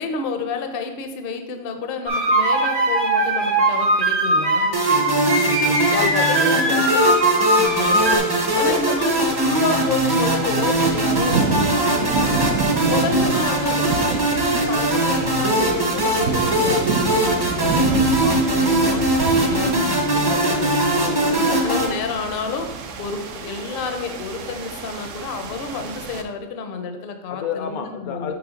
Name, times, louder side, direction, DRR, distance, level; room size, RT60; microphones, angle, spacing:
voice 1, 0.0-4.8 6.2-6.9 7.8-12.6 12.9-19.0 19.4-22.7 23.0-28.3, left 4 dB, 55° left, 5 dB, 0.7 m, -30 dB
sound 1, 2.1-8.2, right 2 dB, 85° right, 1.7 m, -20 dB
sound 2, 4.7-21.9, right 1 dB, 25° right, 0.6 m, -20 dB
voice 2, 5.6-7.2 8.5-9.3 20.9-21.1 21.4-21.7 27.3-28.3, left 7 dB, 80° left, 7 dB, 1.1 m, -30 dB
sound 3, 7.6-26.2, right 5 dB, 65° right, 0.9 m, -29 dB
6.1 x 3.4 x 5.0 m, 0.94 s
omnidirectional pair, 1.5 m